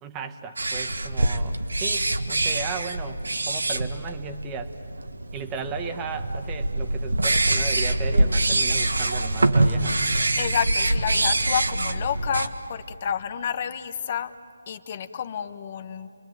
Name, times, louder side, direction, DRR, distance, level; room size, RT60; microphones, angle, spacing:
voice 1, 0.0-4.8 5.3-10.0, right 5 dB, 15° right, 7 dB, 1.2 m, -36 dB
sound 1, 0.6-12.5, right 2 dB, 85° right, 1.7 m, -24 dB
voice 2, 10.4-14.3 14.7-16.1, left 8 dB, 35° left, 10 dB, 1.1 m, -29 dB
29.5 x 22.0 x 9.2 m, 2.4 s
figure-of-eight pair, 160°, 0 cm